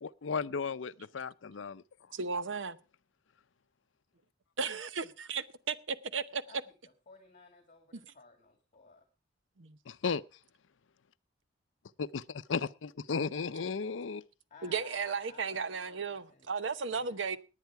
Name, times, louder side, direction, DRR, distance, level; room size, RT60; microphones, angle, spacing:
voice 1, 0.0-1.8 9.9-10.2 12.0-14.2, left 5 dB, 80° left, 0.6 m, -35 dB
voice 2, 2.1-2.8 4.6-6.4 7.9-8.0 9.6-9.8 14.6-17.4, right 5 dB, 80° right, 0.9 m, -35 dB
voice 3, 7.1-9.0 14.5-17.4, left 4 dB, 40° left, 2.1 m, -57 dB
19.0 x 9.2 x 4.7 m
head